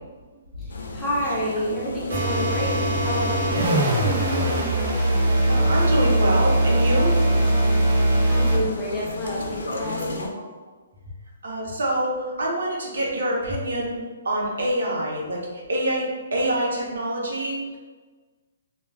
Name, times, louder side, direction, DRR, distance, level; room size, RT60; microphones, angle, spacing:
voice 1, 0.6-4.7 8.3-10.3, equal, 5° left, -8 dB, 0.4 m, -29 dB
sound 1, 0.7-10.3, left 2 dB, 85° left, 0.5 m, -34 dB
sound 2, 2.1-8.7, right 1 dB, 45° right, 0.6 m, -21 dB
voice 2, 5.5-7.1 11.4-14.0 14.2-15.4 15.7-16.1 16.3-17.6, right 1 dB, 90° right, -3 dB, 0.8 m, -25 dB
2.2 x 2.2 x 3.3 m, 1.4 s
hypercardioid pair, 180°, 0 cm